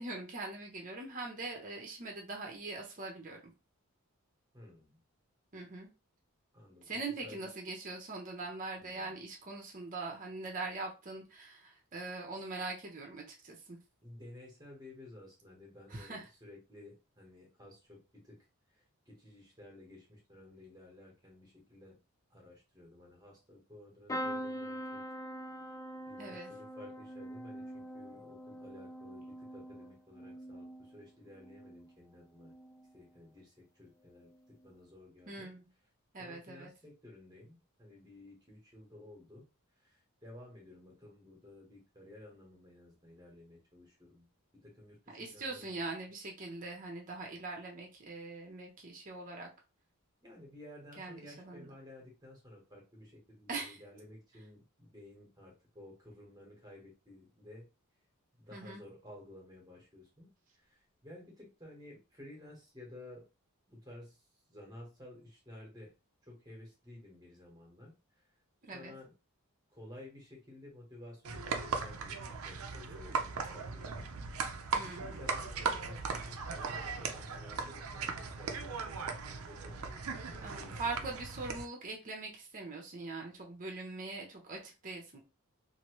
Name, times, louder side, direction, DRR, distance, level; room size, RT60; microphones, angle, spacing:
voice 1, 0.0-3.4 5.5-5.9 6.9-13.8 15.9-16.3 26.2-26.5 35.3-35.7 36.1-36.7 45.1-49.5 51.0-51.7 53.5-53.8 58.5-58.8 68.6-68.9 74.7-75.2 80.4-85.2, right 3 dB, 40° right, 1 dB, 0.8 m, -42 dB
voice 2, 4.5-5.0 6.5-6.9 7.2-7.5 8.8-9.2 14.0-18.4 18.7-22.0 22.3-25.0 25.6-25.7 26.1-32.5 32.9-34.3 34.6-35.5 36.2-39.4 39.8-44.3 44.5-45.9 50.2-57.7 58.4-60.3 60.7-63.2 63.7-64.2 64.5-65.9 66.2-67.9 68.7-69.1 69.7-74.1 74.9-81.2, left 1 dB, 20° right, -2 dB, 1.2 m, -54 dB
sound 1, 24.1-31.9 32.4-32.9 34.2-34.4 34.6-34.7, equal, 15° left, 0.3 m, -44 dB
sound 2, 71.2-81.7, right 5 dB, 80° right, 0.5 m, -38 dB
2.8 x 2.7 x 3.0 m, 0.29 s
head